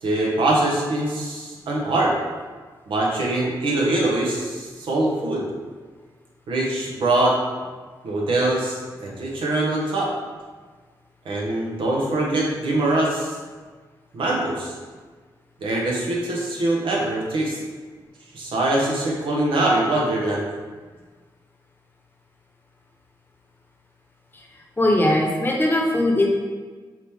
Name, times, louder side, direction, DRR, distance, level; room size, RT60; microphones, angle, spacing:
voice 1, 0.0-2.1 2.9-5.5 6.5-7.4 8.0-10.1 11.2-13.4 14.1-14.7 15.6-17.6 18.3-20.5, right 2 dB, 85° right, -3 dB, 0.9 m, -23 dB
voice 2, 24.8-26.3, left 1 dB, 25° left, -1 dB, 0.8 m, -19 dB
4.9 x 2.9 x 3.5 m, 1.4 s
cardioid pair, 70°, 9 cm